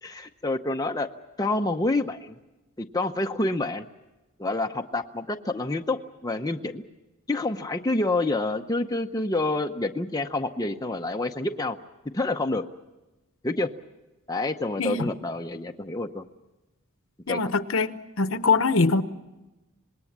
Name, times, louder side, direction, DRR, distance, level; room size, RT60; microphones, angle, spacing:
voice 1, 0.0-1.1 1.4-2.4 2.8-3.9 4.4-6.8 7.3-11.8 12.1-12.6 13.4-13.7 14.3-16.2 17.3-17.4, left 2 dB, 15° left, 0.7 m, -28 dB
voice 2, 14.8-15.1 17.3-19.0, left 3 dB, 60° left, 0.9 m, -23 dB
26.5 x 20.5 x 7.3 m
head